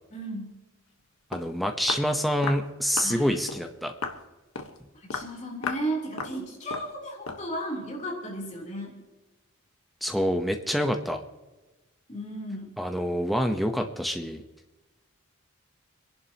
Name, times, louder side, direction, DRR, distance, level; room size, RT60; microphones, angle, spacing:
voice 1, 0.1-0.5 3.0-3.2 5.1-9.0 12.1-12.7, right 1 dB, 30° left, -2 dB, 3.3 m, -34 dB
Walk footsteps, 1.0-1.1 1.3-1.5 1.9-2.1 2.4-2.7 3.0-3.2 3.5-3.7 4.0-4.2 4.6-4.8 5.1-5.3 5.6-5.9 6.2-6.4 6.7-6.9 7.3-7.5, left 4 dB, 75° left, 1.3 m, -34 dB
voice 2, 1.3-3.9 10.0-11.2 12.8-14.4, equal, ahead, 4 dB, 0.8 m, -27 dB
29.0 x 11.5 x 2.9 m, 1.1 s
head